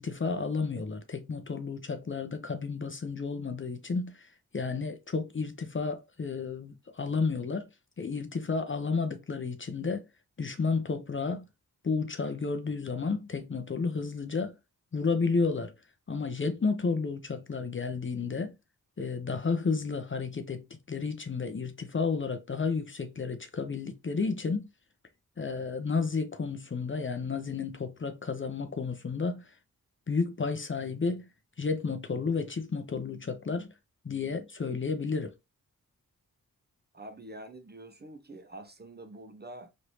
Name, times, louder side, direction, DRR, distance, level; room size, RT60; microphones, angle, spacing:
voice 1, 0.0-7.7 8.0-10.1 10.4-11.5 11.8-14.6 14.9-15.7 16.1-18.6 19.0-24.7 25.4-29.6 30.1-31.3 31.6-33.7 34.0-35.3, left 4 dB, 35° left, 0.6 m, -32 dB
voice 2, 36.9-39.7, right 1 dB, 30° right, 0.7 m, -46 dB
3.1 x 2.6 x 3.0 m
cardioid pair, 45°, 35 cm